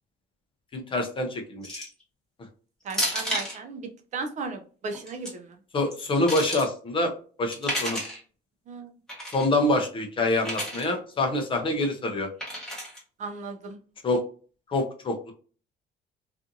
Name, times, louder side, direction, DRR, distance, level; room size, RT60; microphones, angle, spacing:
voice 1, 0.7-1.9 5.7-7.1 7.4-8.0 9.3-12.3 14.0-14.2 14.7-15.3, left 2 dB, 30° left, 4 dB, 0.5 m, -26 dB
sound 1, 1.6-2.0 2.9-3.6 4.9-5.3 5.9-6.7 7.5-8.2 9.1-9.5 10.4-10.9 12.4-13.0, equal, 5° left, 1.0 m, -31 dB
voice 2, 2.8-5.6 8.7-8.9 13.2-13.8, right 4 dB, 45° right, 4 dB, 0.5 m, -36 dB
2.5 x 2.5 x 2.5 m, 0.41 s
cardioid pair, 145°, 18 cm